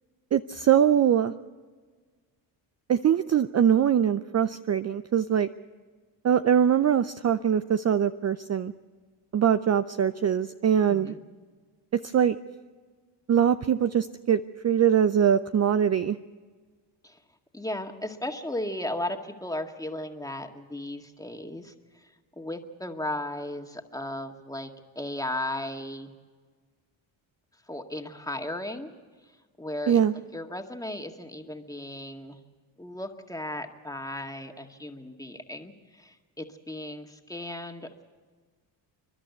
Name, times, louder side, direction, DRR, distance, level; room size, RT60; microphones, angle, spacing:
voice 1, 0.3-1.3 2.9-5.5 6.2-8.7 9.3-11.1 11.9-12.4 13.3-16.2 29.9-30.1, right 9 dB, 35° right, 11 dB, 0.5 m, -22 dB
voice 2, 10.9-11.2 17.0-17.2 17.5-22.1 22.4-24.7 25.0-26.1 27.7-28.9 29.6-30.0 30.3-32.4 32.8-38.0, left 1 dB, 5° left, 4 dB, 1.9 m, -35 dB
29.5 x 11.5 x 8.3 m, 1.5 s
supercardioid pair, 70°, 49 cm